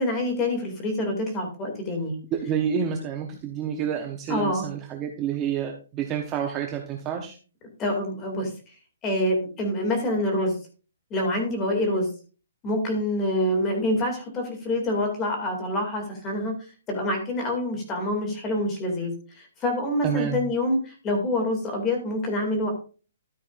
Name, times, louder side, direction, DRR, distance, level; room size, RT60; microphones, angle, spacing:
voice 1, 0.0-2.2 4.3-4.7 7.8-8.5 9.0-10.5 11.1-12.1 12.6-16.5 16.9-22.7, left 1 dB, 15° left, 2 dB, 2.2 m, -26 dB
voice 2, 2.3-7.4 20.0-20.4, right 8 dB, 15° right, 3 dB, 0.7 m, -28 dB
13.0 x 8.3 x 2.4 m, 0.35 s
hypercardioid pair, 180°, 0 cm